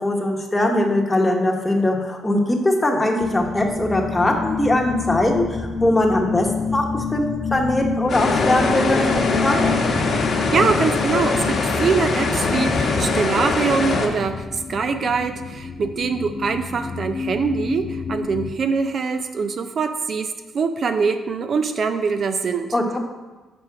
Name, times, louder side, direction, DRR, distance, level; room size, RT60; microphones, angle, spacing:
voice 1, 0.0-9.6 22.7-23.0, left 1 dB, 15° left, 1 dB, 1.0 m, -21 dB
sound 1, 3.2-18.5, left 5 dB, 35° left, 0.4 m, -29 dB
sound 2, 8.1-14.1, left 3 dB, 55° left, 1.1 m, -22 dB
voice 2, 10.5-22.7, right 5 dB, 50° right, 8 dB, 0.4 m, -23 dB
5.9 x 4.9 x 4.7 m, 1.2 s
cardioid pair, 95°, 0 cm